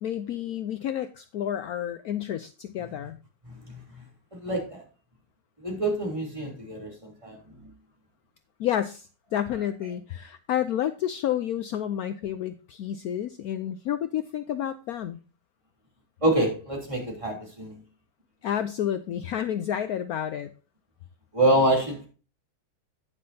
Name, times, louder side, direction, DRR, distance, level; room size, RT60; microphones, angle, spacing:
voice 1, 0.0-3.2 8.6-15.2 18.4-20.5, left 10 dB, 75° left, 0.8 m, -30 dB
voice 2, 3.5-3.8 4.4-4.8 5.6-7.4 7.6-7.7 16.2-17.7 21.3-22.1, right 1 dB, 15° right, 3.1 m, -26 dB
10.5 x 9.5 x 2.7 m
omnidirectional pair, 2.2 m